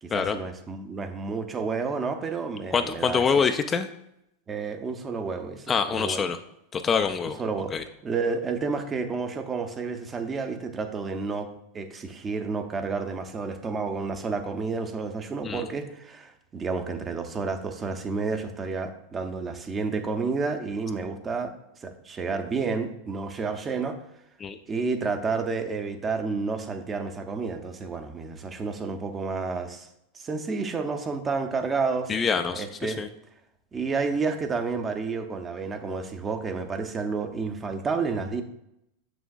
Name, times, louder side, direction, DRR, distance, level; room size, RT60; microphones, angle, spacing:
voice 1, 0.0-3.5 4.5-6.2 7.4-7.8 8.0-21.5 21.8-24.0 24.7-29.9 30.1-32.1 32.5-33.0 33.7-38.4, right 4 dB, 25° right, 6 dB, 0.7 m, -30 dB
voice 2, 2.7-3.9 5.7-6.4 6.7-7.4 7.7-7.8 15.4-15.6 24.4-24.6 32.1-33.1, left 6 dB, 25° left, 8 dB, 0.4 m, -25 dB
6.9 x 6.2 x 2.3 m, 0.81 s
hypercardioid pair, 95°, 0 cm